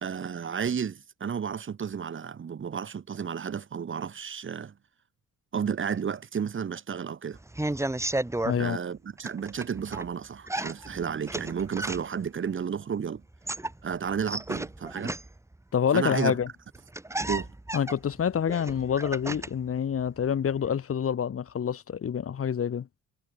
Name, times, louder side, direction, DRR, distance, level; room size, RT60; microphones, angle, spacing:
voice 1, 0.0-4.7 5.5-7.4 8.6-13.2 13.8-15.2 15.9-16.3 17.3-17.5, right 7 dB, 40° right, 1.7 m, -32 dB
sound 1, 7.3-8.6 9.2-10.1 10.5-12.3 13.2-15.5 16.4-16.5 16.7-19.7 20.0-20.7, right 1 dB, 10° right, 2.1 m, -33 dB
voice 2, 8.4-8.8 15.7-16.5 17.7-22.9, left 8 dB, 50° left, 2.2 m, -27 dB
cardioid pair, 90°, 30 cm